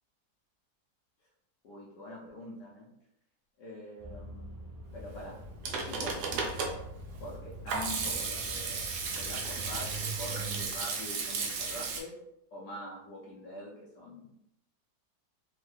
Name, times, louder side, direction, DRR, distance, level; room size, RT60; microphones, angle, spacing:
voice 1, 1.6-2.9 3.6-4.5 4.9-5.4 5.7-6.5 7.2-12.1 12.5-14.3, equal, 85° left, -5 dB, 1.3 m, -44 dB
sound 1, 4.0-10.7, right 2 dB, 55° right, 0.4 m, -44 dB
Hands / Sink (filling or washing), 5.3-12.0, right 4 dB, 80° right, 1.2 m, -35 dB
3.5 x 2.2 x 3.2 m, 0.80 s
omnidirectional pair, 1.7 m